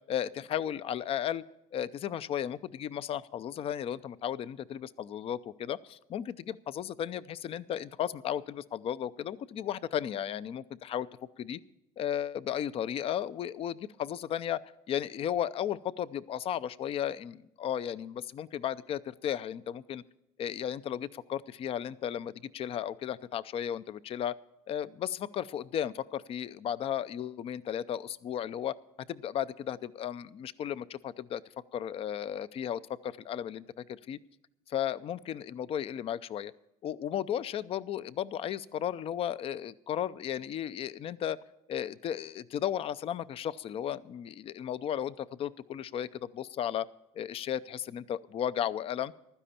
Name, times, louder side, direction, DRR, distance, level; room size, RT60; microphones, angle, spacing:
voice 1, 0.0-1.4 1.7-11.1 11.4-11.6 12.0-14.6 14.9-20.0 20.4-24.3 24.7-28.8 29.1-31.4 31.7-34.2 34.7-36.5 36.8-41.4 41.7-46.9 47.1-49.1, left 10 dB, 45° left, 16 dB, 0.5 m, -34 dB
15.5 x 12.5 x 4.3 m, 0.86 s
cardioid pair, 120°, 14 cm